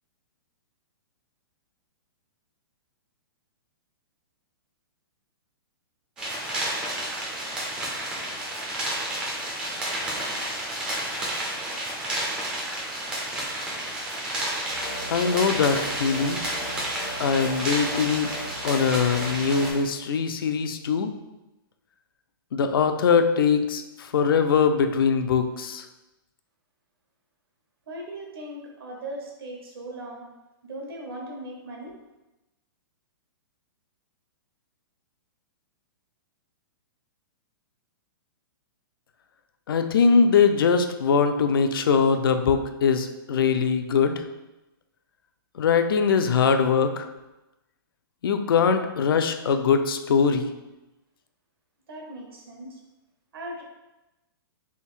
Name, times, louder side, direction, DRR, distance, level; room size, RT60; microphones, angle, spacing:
sound 1, 6.2-19.7, right 1 dB, 5° right, 0.4 m, -31 dB
sound 2, 14.7-19.8, equal, 85° left, 1.3 m, -39 dB
voice 1, 15.1-16.4 17.2-18.3 18.6-21.1 22.5-25.8 39.7-44.2 45.6-47.1 48.2-50.5, left 6 dB, 65° left, 8 dB, 0.4 m, -22 dB
voice 2, 27.9-30.3 30.6-31.9 51.9-52.8 53.3-53.6, right 1 dB, 75° right, 0 dB, 1.2 m, -38 dB
3.5 x 2.6 x 4.5 m, 1.0 s
hypercardioid pair, 175°, 12 cm